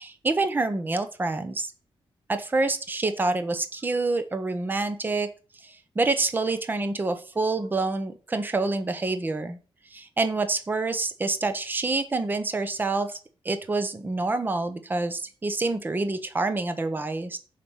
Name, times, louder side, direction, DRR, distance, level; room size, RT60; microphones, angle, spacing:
voice 1, 0.0-1.7 2.3-5.3 5.5-9.6 9.9-13.2 13.4-17.4, right 3 dB, 20° right, 9 dB, 0.8 m, -27 dB
7.0 x 5.2 x 7.2 m, 0.36 s
wide cardioid pair, 165°, 10 cm